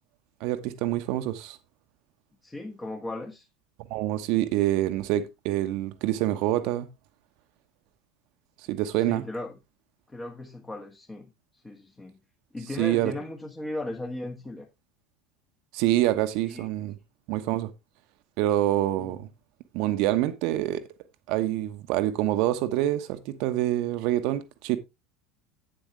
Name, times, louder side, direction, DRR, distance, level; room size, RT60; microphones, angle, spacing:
voice 1, 0.4-1.6 3.9-6.9 8.7-9.2 12.8-13.1 15.7-16.9 17.3-17.7 18.4-19.3 19.7-20.8 21.3-24.8, right 14 dB, 55° right, 1.1 m, -26 dB
voice 2, 2.4-3.5 8.9-9.6 10.1-12.2 12.5-14.7 16.4-16.7 19.0-19.2, left 2 dB, 15° left, 1.5 m, -37 dB
9.1 x 7.8 x 3.3 m
figure-of-eight pair, 70°, 0 cm